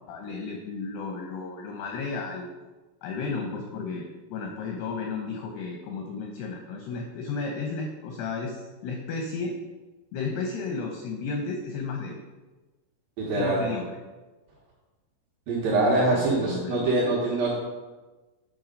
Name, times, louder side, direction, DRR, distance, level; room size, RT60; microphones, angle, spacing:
voice 1, 0.1-2.5 3.0-9.6 10.1-12.2 13.4-13.8 15.7-16.9, left 4 dB, 80° left, 2 dB, 2.3 m, -33 dB
voice 2, 13.2-13.6 15.5-17.5, right 2 dB, 75° right, -5 dB, 2.2 m, -24 dB
8.4 x 4.6 x 5.2 m, 1.2 s
omnidirectional pair, 5.6 m